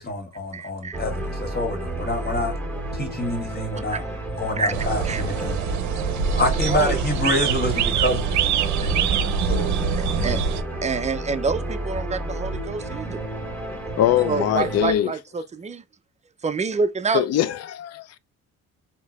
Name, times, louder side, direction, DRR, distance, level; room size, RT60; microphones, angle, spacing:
voice 1, 0.0-2.5 2.9-4.0 4.4-5.6 6.3-10.4, left 1 dB, 30° left, 1.8 m, -27 dB
voice 2, 0.5-1.0 3.9-4.0 4.6-4.7 5.0-5.2 6.7-6.9 10.0-10.4 10.8-13.2 14.2-15.8 16.4-17.3, right 4 dB, 25° right, 0.5 m, -27 dB
sound 1, 0.9-14.9, right 1 dB, 5° left, 1.7 m, -31 dB
sound 2, 4.7-10.6, right 7 dB, 70° right, 0.6 m, -24 dB
voice 3, 14.0-15.1 17.1-18.2, left 12 dB, 60° left, 0.5 m, -22 dB
4.4 x 2.9 x 2.3 m
cardioid pair, 90°, 30 cm